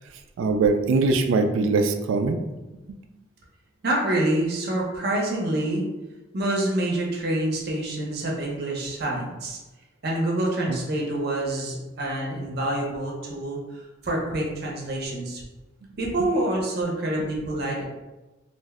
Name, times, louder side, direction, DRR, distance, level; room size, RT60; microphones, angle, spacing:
voice 1, 0.4-2.4 10.7-10.8, right 3 dB, 80° right, 6 dB, 0.3 m, -22 dB
voice 2, 3.8-5.9 6.3-9.6 10.0-15.4 16.0-17.9, right 1 dB, 50° right, -2 dB, 0.7 m, -27 dB
2.5 x 2.1 x 3.5 m, 1.1 s
head